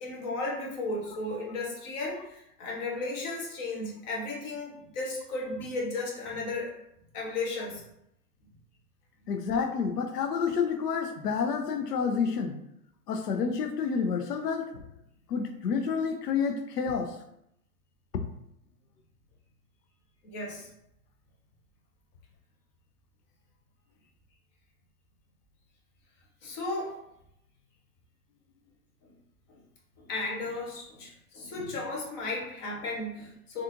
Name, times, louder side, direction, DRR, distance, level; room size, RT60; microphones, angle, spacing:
voice 1, 0.0-6.7 7.1-7.8 20.2-20.7 26.4-26.9 30.1-33.6, left 2 dB, 20° left, -2 dB, 0.5 m, -34 dB
voice 2, 9.3-12.6 13.1-14.7 15.3-17.2, left 6 dB, 85° left, 6 dB, 0.6 m, -29 dB
3.5 x 2.4 x 2.8 m, 0.79 s
hypercardioid pair, 135°, 46 cm